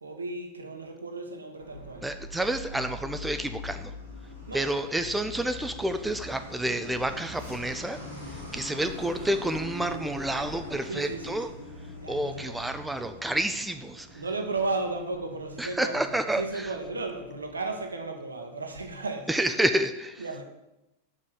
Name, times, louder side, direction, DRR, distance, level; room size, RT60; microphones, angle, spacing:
voice 1, 0.0-2.1 4.5-4.7 10.9-11.4 12.0-12.7 14.2-16.0 16.4-19.3 20.2-20.4, right 3 dB, 75° right, 4 dB, 1.0 m, -34 dB
Truck, 1.6-17.8, left 2 dB, 85° left, 2.8 m, -43 dB
voice 2, 2.0-3.9 4.5-8.0 8.3-11.5 12.1-14.2 15.6-16.7 19.3-20.3, right 1 dB, 5° right, 8 dB, 0.4 m, -29 dB
5.4 x 5.0 x 6.3 m, 0.94 s
figure-of-eight pair, 90°, 0 cm